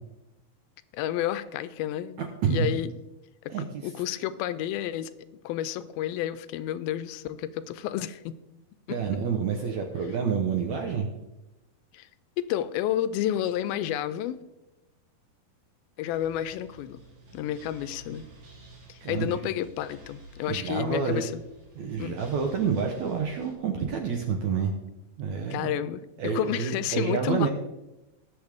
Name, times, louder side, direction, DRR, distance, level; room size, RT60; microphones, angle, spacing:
voice 1, 0.9-2.9 3.4-5.1 5.4-8.4 8.9-9.0 11.9-12.1 12.4-14.4 16.0-17.0 17.3-18.3 18.9-21.4 22.0-22.2 25.5-27.5, left 11 dB, 85° left, 14 dB, 2.3 m, -30 dB
voice 2, 3.5-3.8 8.9-11.1 19.0-19.4 20.5-21.3 21.8-24.8 25.2-25.7 26.2-27.5, right 6 dB, 75° right, 3 dB, 1.8 m, -28 dB
sound 1, 16.1-23.5, right 1 dB, 55° right, 3.3 m, -51 dB
19.5 x 7.0 x 3.5 m, 1.0 s
omnidirectional pair, 4.3 m